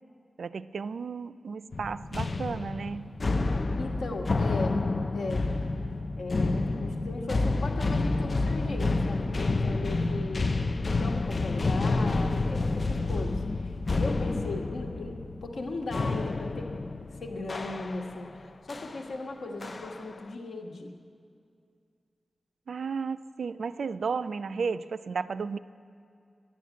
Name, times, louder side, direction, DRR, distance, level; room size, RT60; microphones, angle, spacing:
voice 1, 0.4-3.2 22.7-25.6, right 5 dB, 85° right, 13 dB, 0.4 m, -33 dB
sound 1, 1.7-18.3 18.7-19.0 19.6-20.1, left 3 dB, 50° left, 0.5 m, -29 dB
voice 2, 3.8-4.9 5.1-5.5 6.2-10.5 11.0-20.9, left 2 dB, 90° left, 1 dB, 1.4 m, -38 dB
11.5 x 11.0 x 8.3 m, 2.4 s
wide cardioid pair, 70°, 0 cm